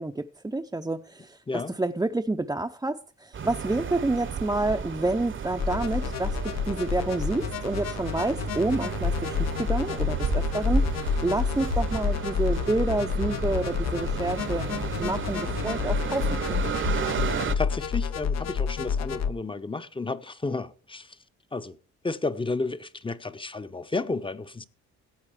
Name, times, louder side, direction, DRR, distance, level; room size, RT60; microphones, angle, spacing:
voice 1, 0.0-14.7 15.0-16.4 16.6-16.7, right 2 dB, 10° right, 0.7 m, -29 dB
sound 1, 3.3-17.6, right 7 dB, 40° right, 1.0 m, -33 dB
sound 2, 5.6-19.3, left 7 dB, 60° left, 0.8 m, -29 dB
voice 2, 17.6-21.2 21.5-21.8 22.0-24.6, left 3 dB, 15° left, 0.9 m, -32 dB
15.5 x 8.5 x 5.0 m
cardioid pair, 90°, 30 cm